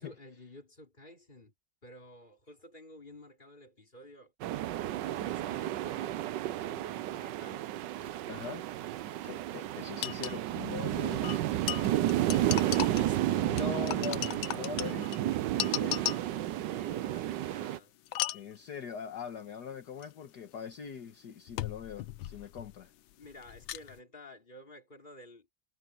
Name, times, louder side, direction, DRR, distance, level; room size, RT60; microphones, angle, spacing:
voice 1, 0.0-1.5 1.8-4.3 5.0-8.5 12.3-13.6 15.7-17.9 23.2-25.5, left 1 dB, 25° left, 3.9 m, -52 dB
sound 1, 4.4-17.8, right 13 dB, 70° right, 1.3 m, -32 dB
voice 2, 8.3-8.7 9.3-11.6 13.4-16.1 18.3-22.9, left 7 dB, 60° left, 1.8 m, -42 dB
sound 2, 9.0-9.1 9.2-9.3 10.0-10.4 11.2-13.2 13.6-16.4 18.1-18.6 20.0-20.1 21.5-22.8 23.1-24.0, left 14 dB, 85° left, 1.5 m, -36 dB
omnidirectional pair, 2.1 m